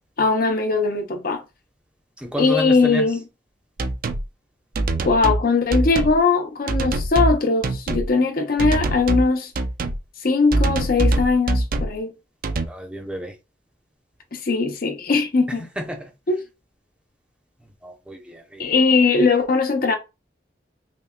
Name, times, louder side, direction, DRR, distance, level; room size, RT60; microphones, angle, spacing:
voice 1, 0.2-1.4 2.4-3.3 5.0-9.5 10.2-12.1 14.3-15.7 16.3-16.4 18.6-20.0, left 4 dB, 55° left, 0.6 m, -20 dB
voice 2, 2.2-3.0 12.7-13.3 15.8-16.1 17.8-18.8, equal, 5° right, 0.7 m, -31 dB
sound 1, 3.8-4.2 4.7-5.4 5.7-6.2 6.7-7.4 7.6-8.1 8.6-9.3 9.5-10.0 10.5-12.0 12.4-12.7, right 2 dB, 55° right, 0.5 m, -23 dB
5.7 x 2.2 x 2.2 m
head